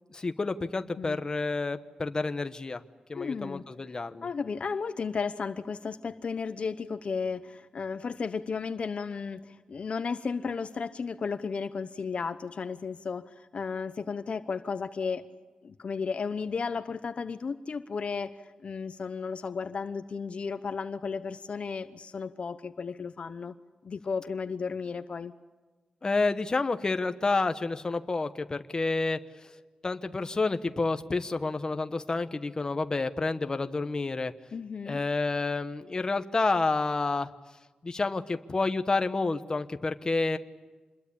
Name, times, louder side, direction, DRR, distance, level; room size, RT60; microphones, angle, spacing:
voice 1, 0.1-2.8 3.1-4.3 26.0-29.5 29.8-34.3 34.8-37.3 37.8-40.4, left 3 dB, 30° left, 9 dB, 1.1 m, -29 dB
voice 2, 3.1-3.6 4.2-15.3 15.6-23.5 23.8-25.3 34.5-35.0, left 5 dB, 55° left, 11 dB, 0.9 m, -34 dB
27.0 x 21.5 x 8.7 m, 1.3 s
wide cardioid pair, 135°, 2 cm